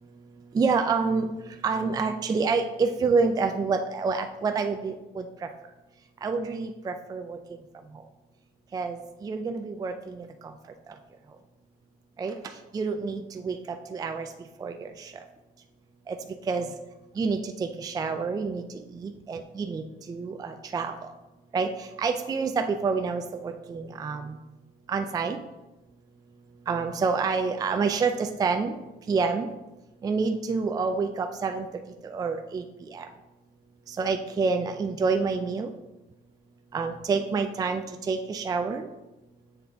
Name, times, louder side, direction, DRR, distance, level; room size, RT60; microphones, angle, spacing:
voice 1, 0.5-1.3 1.6-5.5 6.2-7.4 8.7-10.3 12.2-12.4 12.7-13.6 13.9-14.3 14.6-15.2 16.1-16.2 16.5-16.7 17.2-18.6 18.9-20.9 21.5-24.4 24.9-25.4 26.7-28.7 29.1-29.5 30.0-31.7 32.0-32.6 32.9-33.1 33.9-35.7 36.7-38.9, right 4 dB, 20° right, 6 dB, 0.3 m, -28 dB
7.8 x 3.6 x 3.4 m, 1.0 s
cardioid pair, 110°, 17 cm